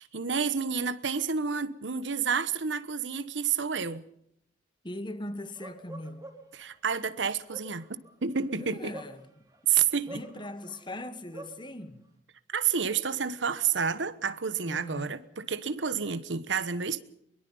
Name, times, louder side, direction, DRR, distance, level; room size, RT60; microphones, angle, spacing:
voice 1, 0.0-4.0 6.5-9.0 9.7-10.2 12.5-17.0, right 6 dB, 80° right, 1.1 m, -29 dB
voice 2, 4.8-6.3 8.5-9.5 10.1-12.1 14.7-15.2, left 1 dB, 25° left, 1.5 m, -40 dB
Bark, 5.6-6.6 7.3-9.6 10.1-11.6, right 1 dB, 20° right, 3.9 m, -46 dB
23.0 x 22.5 x 5.5 m
head